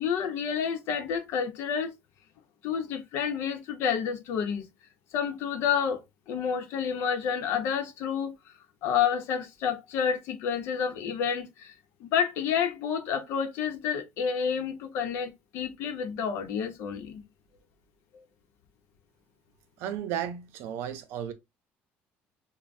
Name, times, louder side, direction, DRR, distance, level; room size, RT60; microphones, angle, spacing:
voice 1, 0.0-1.9 2.6-4.7 5.1-8.3 8.8-11.7 12.0-17.2 18.1-18.2, left 7 dB, 65° left, 0.8 m, -29 dB
voice 2, 19.8-21.3, right 10 dB, 65° right, 0.7 m, -34 dB
5.2 x 2.2 x 2.6 m
cardioid pair, 165°, 4 cm